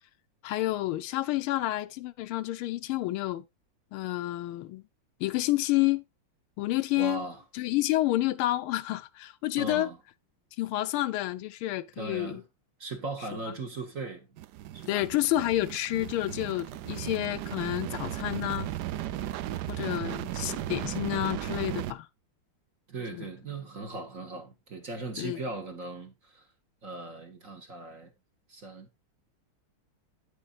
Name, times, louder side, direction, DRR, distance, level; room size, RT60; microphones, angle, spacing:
voice 1, 0.4-3.4 3.9-4.8 5.2-6.0 6.6-7.2 7.5-9.9 10.6-12.4 14.9-18.7 19.7-22.1 23.1-23.3 25.2-25.4, left 16 dB, 80° left, 1.4 m, -29 dB
voice 2, 7.0-7.4 9.6-10.0 12.0-12.4 12.8-14.3 14.7-15.0 22.9-26.5 26.8-28.1 28.5-28.9, right 3 dB, 45° right, 1.5 m, -38 dB
sound 1, 14.4-21.9, right 13 dB, 85° right, 0.9 m, -36 dB
9.1 x 8.4 x 2.4 m
omnidirectional pair, 2.4 m